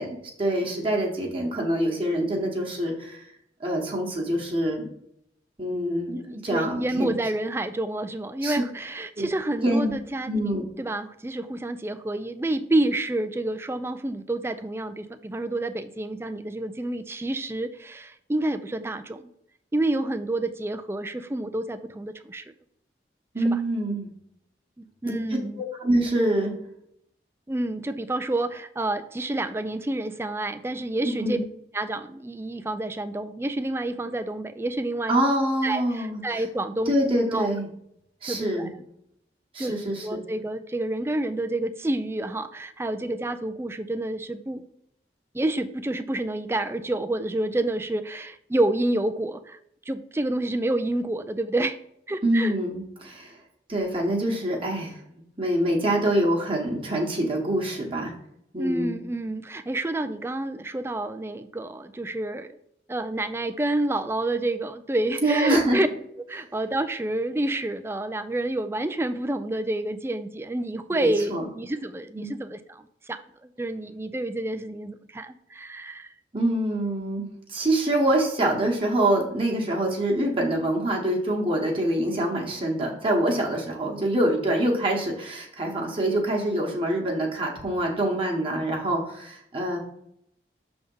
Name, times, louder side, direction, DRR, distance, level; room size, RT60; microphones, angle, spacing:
voice 1, 0.0-3.3 3.6-4.9 5.6-7.1 8.4-8.6 9.2-9.3 9.6-9.9 10.3-10.6 23.3-24.1 25.0-25.1 25.6-26.5 31.2-31.4 35.1-36.4 36.8-37.7 38.2-38.7 39.5-40.2 52.2-53.4 53.7-55.0 55.4-58.1 58.5-59.0 65.2-65.8 70.9-71.5 72.1-72.3 76.3-89.8, right 1 dB, 30° right, -1 dB, 1.1 m, -25 dB
voice 2, 6.1-19.2 19.7-22.4 23.4-23.6 24.8-25.6 27.5-31.4 31.7-35.1 35.6-36.9 37.3-37.5 38.3-38.7 39.6-39.7 40.0-44.6 45.3-49.6 49.9-51.8 52.1-52.5 58.6-62.5 62.9-65.9 66.3-76.1, right 1 dB, 15° right, 9 dB, 0.3 m, -29 dB
6.5 x 3.5 x 5.4 m, 0.74 s
head